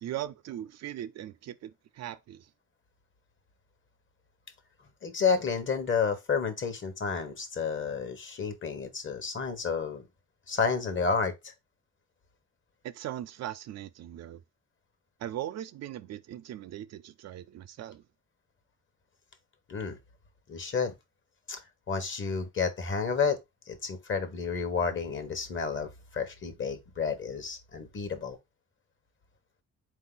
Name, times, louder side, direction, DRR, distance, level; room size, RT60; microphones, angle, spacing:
voice 1, 0.0-2.5 12.8-14.4 15.2-18.0, right 12 dB, 60° right, 0.4 m, -39 dB
voice 2, 5.0-10.0 10.5-11.5 19.7-20.0 20.5-20.9 21.5-21.6 21.9-23.4 23.7-28.4, left 5 dB, 40° left, 1.0 m, -30 dB
4.0 x 2.8 x 3.8 m
cardioid pair, 90°, 30 cm